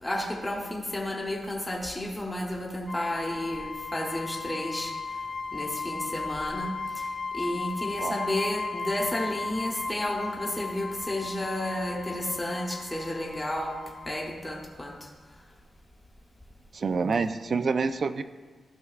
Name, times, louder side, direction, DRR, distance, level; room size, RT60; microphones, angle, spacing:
voice 1, 0.0-4.9 5.5-7.0 7.3-13.8 14.1-14.9, left 1 dB, 10° left, -1 dB, 0.8 m, -32 dB
sound 1, 2.9-14.3, left 4 dB, 30° left, 0.4 m, -36 dB
voice 2, 16.7-18.2, right 4 dB, 45° right, 11 dB, 0.3 m, -27 dB
12.5 x 5.7 x 2.4 m, 1.4 s
wide cardioid pair, 120°, 0 cm